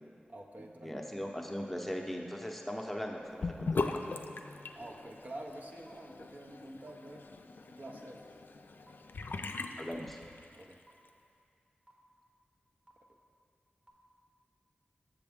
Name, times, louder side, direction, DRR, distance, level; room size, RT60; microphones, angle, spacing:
voice 1, 0.3-0.9 4.8-7.3 7.8-8.2 10.5-10.8, right 1 dB, 50° right, 0 dB, 0.7 m, -47 dB
voice 2, 0.8-3.9 9.8-10.2, equal, 5° left, 0 dB, 0.7 m, -39 dB
Sink (filling or washing) / Bathtub (filling or washing), 3.4-10.7, left 3 dB, 75° left, 0.3 m, -40 dB
sound 1, 4.9-5.0 5.9-6.0 6.9-7.0 7.9-8.0 8.9-9.0 9.9-10.0 10.9-11.0 11.9-12.0 12.9-13.0 13.9-14.0, right 1 dB, 35° right, 1.1 m, -58 dB
7.1 x 6.9 x 3.5 m, 2.4 s
cardioid pair, 45°, 3 cm